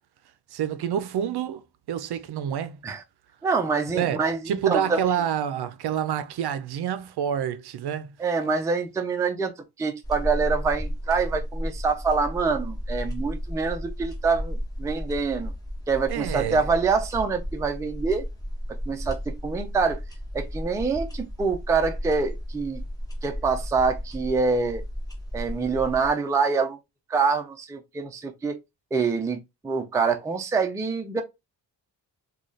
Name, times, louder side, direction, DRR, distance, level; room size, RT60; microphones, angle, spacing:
voice 1, 0.5-1.6 1.9-2.8 4.0-4.2 4.5-8.1 16.1-16.6, right 9 dB, 65° right, 0.5 m, -27 dB
voice 2, 3.4-5.2 8.2-9.5 9.8-15.5 15.9-18.2 18.7-20.0 20.3-22.8 23.2-24.8 25.3-26.8 27.1-28.6 28.9-31.2, right 4 dB, 10° right, 0.3 m, -25 dB
sound 1, 10.0-26.1, equal, 10° left, 0.8 m, -34 dB
3.2 x 2.3 x 3.8 m
wide cardioid pair, 165°, 43 cm